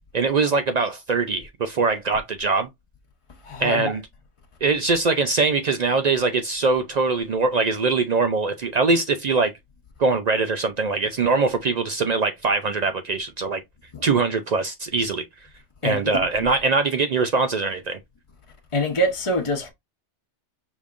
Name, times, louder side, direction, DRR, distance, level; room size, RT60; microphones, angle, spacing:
voice 1, 0.1-2.7 3.6-4.0 4.6-9.5 10.0-13.6 14.0-15.2 15.8-18.0, right 4 dB, 60° right, 0.4 m, -22 dB
voice 2, 3.5-3.9 15.8-16.1 18.7-19.7, equal, 30° left, 1.0 m, -24 dB
5.0 x 3.5 x 2.5 m
omnidirectional pair, 1.2 m